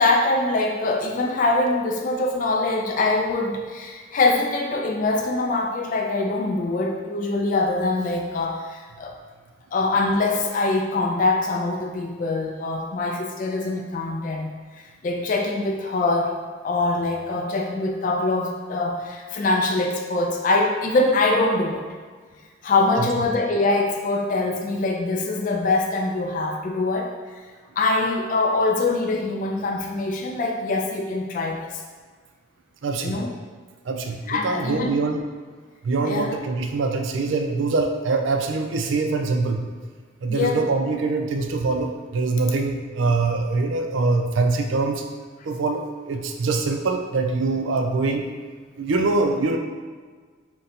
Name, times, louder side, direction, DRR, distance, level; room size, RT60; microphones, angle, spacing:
voice 1, 0.0-9.1 9.7-14.5 15.0-16.4 16.6-21.8 22.6-27.1 27.8-31.8 33.0-33.3 34.3-35.0 36.1-36.3 40.3-40.6, left 2 dB, 40° left, 1 dB, 0.3 m, -23 dB
voice 2, 32.8-33.2 33.8-35.2 35.8-39.6 40.2-45.0 45.4-48.3 48.8-49.6, right 3 dB, 70° right, 4 dB, 0.4 m, -24 dB
3.8 x 2.2 x 4.2 m, 1.5 s
head